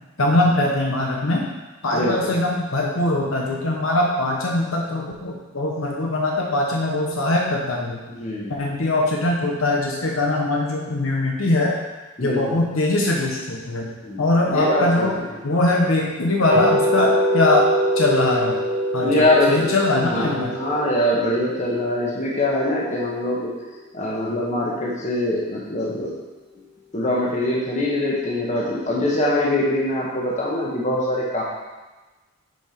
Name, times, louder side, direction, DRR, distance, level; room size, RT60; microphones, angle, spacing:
voice 1, 0.2-1.4 1.8-8.0 8.5-11.8 12.2-13.9 14.2-15.2 15.4-17.7 18.0-18.6 18.9-20.5, left 2 dB, 70° left, -1 dB, 0.9 m, -21 dB
voice 2, 1.9-2.3 8.2-8.5 12.2-12.6 14.0-15.3 19.0-23.5 23.9-26.2 26.9-31.4, left 1 dB, 35° left, -4 dB, 1.2 m, -23 dB
sound 1, 16.5-22.6, equal, 30° right, 1.6 m, -24 dB
6.2 x 4.6 x 5.1 m, 1.2 s
head